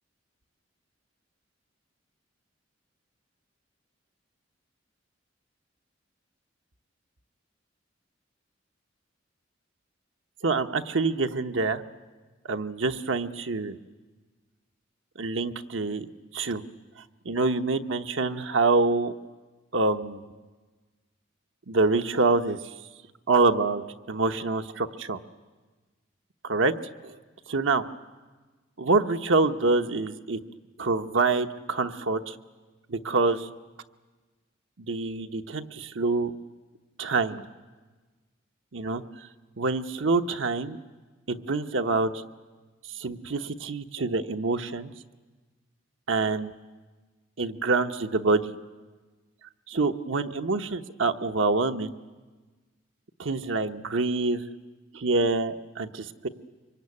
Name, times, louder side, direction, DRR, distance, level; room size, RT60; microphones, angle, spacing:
voice 1, 10.4-11.8 12.4-13.8 15.2-16.0 16.3-16.6 17.2-19.1 19.7-20.2 21.7-22.6 23.3-23.8 24.1-25.2 26.4-26.7 27.5-27.8 28.8-30.4 30.8-32.3 32.9-33.5 34.8-36.3 37.0-37.5 38.7-39.0 39.6-40.8 41.3-42.1 43.0-44.9 46.1-46.5 47.4-48.6 49.7-51.9 53.2-54.4 54.9-56.3, right 3 dB, 85° right, 7 dB, 1.0 m, -26 dB
24.5 x 23.0 x 9.8 m, 1.3 s
head